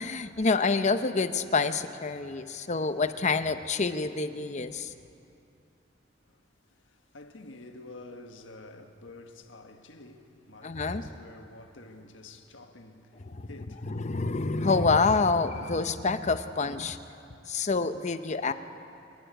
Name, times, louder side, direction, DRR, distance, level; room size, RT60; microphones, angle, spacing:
voice 1, 0.0-4.9 10.6-11.0 13.2-13.5 13.9-17.0 17.5-18.5, left 4 dB, 40° left, 0.7 m, -27 dB
voice 2, 6.2-14.0, left 2 dB, 90° left, 1.5 m, -49 dB
29.0 x 12.0 x 9.2 m
head